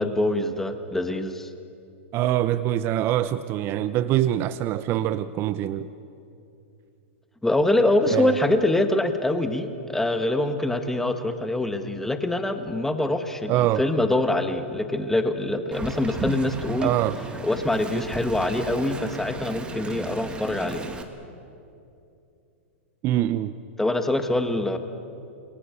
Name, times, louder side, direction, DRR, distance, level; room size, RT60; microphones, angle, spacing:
voice 1, 0.0-1.5 7.4-16.9 17.4-20.8 23.8-24.8, left 1 dB, 5° left, 7 dB, 1.7 m, -24 dB
voice 2, 2.1-5.9 8.1-8.3 13.5-13.8 16.8-17.2 23.0-23.5, right 13 dB, 35° right, 12 dB, 0.7 m, -24 dB
Wind, 15.7-21.0, right 4 dB, 15° right, 2.0 m, -35 dB
29.0 x 21.5 x 7.1 m, 2.7 s
hypercardioid pair, 130°, 7 cm